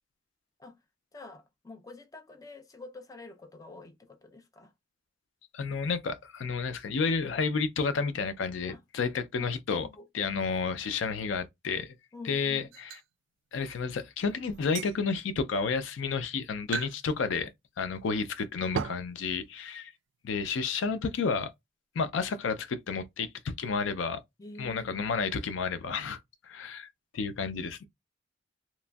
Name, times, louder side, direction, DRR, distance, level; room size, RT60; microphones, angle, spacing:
voice 1, 1.1-4.7 8.7-8.8 9.4-9.5 9.8-10.1 12.1-12.7 24.4-25.2, left 3 dB, 20° left, 0.4 m, -47 dB
voice 2, 5.5-9.9 10.1-12.0 12.2-13.0 13.5-17.5 17.8-19.9 20.2-21.5 22.0-24.2 24.6-26.2 26.4-26.9 27.1-27.9, left 5 dB, 90° left, 0.4 m, -31 dB
sound 1, 12.7-13.0 14.5-15.0 15.8-15.9 16.7-17.0 17.3-17.4 18.7-19.1, right 6 dB, 85° right, 0.3 m, -35 dB
2.9 x 2.5 x 2.2 m
head